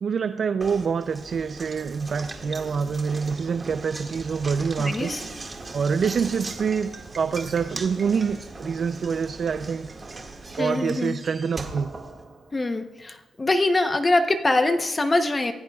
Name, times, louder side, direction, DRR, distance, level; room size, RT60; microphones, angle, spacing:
voice 1, 0.0-5.1 5.7-9.9 10.6-11.9, right 6 dB, 45° right, 10 dB, 0.5 m, -26 dB
Knock, 0.6-12.8, right 3 dB, 25° right, 2.0 m, -39 dB
voice 2, 4.8-5.2 10.6-11.2 12.5-15.5, left 2 dB, 20° left, 7 dB, 0.9 m, -23 dB
29.0 x 16.5 x 2.4 m, 1.1 s
wide cardioid pair, 145°, 0 cm